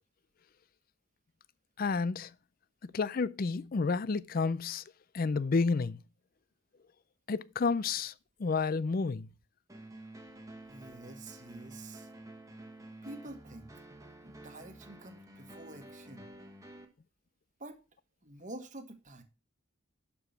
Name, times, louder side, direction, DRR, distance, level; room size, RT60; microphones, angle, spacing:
voice 1, 1.8-2.3 2.8-4.8 5.1-6.0 7.3-8.1 8.4-9.3, left 4 dB, 40° left, 0.4 m, -30 dB
sound 1, 9.7-16.9, right 1 dB, 15° right, 1.3 m, -50 dB
voice 2, 10.7-12.1 13.0-13.7 14.2-16.3 17.6-17.8 18.2-19.2, right 2 dB, 35° right, 1.4 m, -48 dB
12.0 x 4.9 x 5.8 m
head